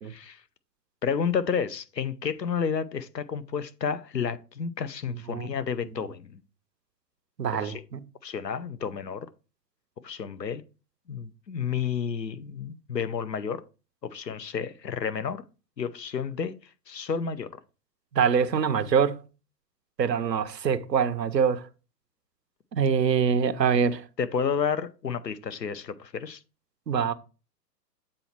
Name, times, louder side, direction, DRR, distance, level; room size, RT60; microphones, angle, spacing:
voice 1, 0.1-0.4 1.0-6.4 7.6-7.8 8.2-9.3 10.0-10.6 11.1-13.6 14.0-15.4 15.8-16.5 16.9-17.5 24.2-26.4, left 6 dB, 85° left, 0.8 m, -31 dB
voice 2, 7.4-8.0 18.1-19.2 20.0-21.6 22.7-24.0 26.9-27.1, right 7 dB, 80° right, 0.8 m, -24 dB
7.7 x 4.3 x 4.4 m
figure-of-eight pair, 110°, 49 cm